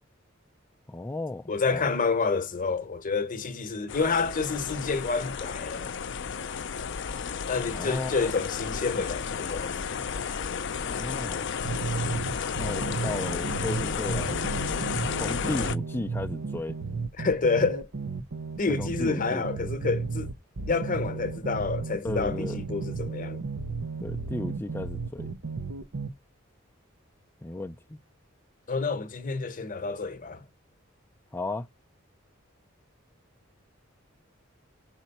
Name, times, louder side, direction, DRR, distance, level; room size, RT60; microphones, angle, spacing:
voice 1, 0.9-1.9 7.7-8.3 10.8-11.5 12.5-14.5 15.1-16.7 18.7-19.5 22.0-22.6 24.0-25.3 27.4-28.0 31.3-31.7, left 2 dB, 10° left, 0.4 m, -35 dB
voice 2, 1.5-5.9 7.5-10.0 17.2-17.9 18.6-20.3 20.7-23.4 28.7-30.4, left 4 dB, 40° left, 0.9 m, -29 dB
sound 1, 3.9-15.8, left 6 dB, 65° left, 0.5 m, -32 dB
sound 2, 11.6-26.1, right 4 dB, 85° right, 0.7 m, -34 dB
5.9 x 4.4 x 4.1 m
head